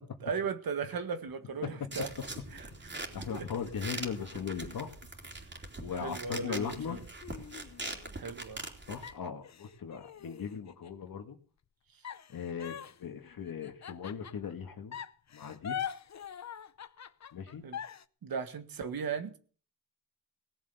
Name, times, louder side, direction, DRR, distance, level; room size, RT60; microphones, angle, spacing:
voice 1, 0.2-2.1 2.5-3.5 3.9-4.0 5.6-5.7 6.0-7.0 8.2-8.7 17.6-17.8 18.2-19.4, right 6 dB, 90° right, 9 dB, 1.7 m, -37 dB
sound 1, 1.4-2.8 3.5-5.7 6.1-6.2 6.6-8.7 9.0-11.0 12.0-14.5 14.9-18.0, left 8 dB, 50° left, 0.7 m, -44 dB
sound 2, 1.9-9.1, right 2 dB, 30° right, 3.3 m, -43 dB
voice 2, 3.1-4.9 5.8-7.0 8.9-11.4 12.3-15.0 15.3-15.8 17.3-17.6, left 7 dB, 85° left, 4 dB, 1.7 m, -38 dB
18.0 x 7.6 x 6.9 m, 0.43 s
wide cardioid pair, 95°, 34 cm